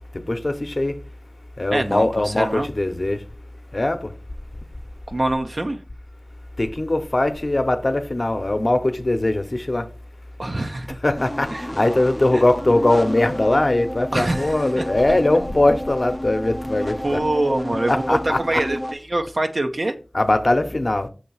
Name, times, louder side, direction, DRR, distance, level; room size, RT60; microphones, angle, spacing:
voice 1, 0.3-1.0 1.6-3.2 3.7-4.1 6.6-9.9 11.0-11.5 11.8-17.2 17.9-18.6 20.1-21.1, left 2 dB, 55° left, 0.8 m, -21 dB
voice 2, 1.7-2.7 5.1-5.8 10.4-10.9 11.5-11.7 12.3-12.4 14.1-14.8 17.0-19.9, right 1 dB, 65° right, 0.7 m, -24 dB
sound 1, 11.2-18.9, equal, 15° left, 0.4 m, -31 dB
6.6 x 2.8 x 5.5 m
wide cardioid pair, 45°, 0 cm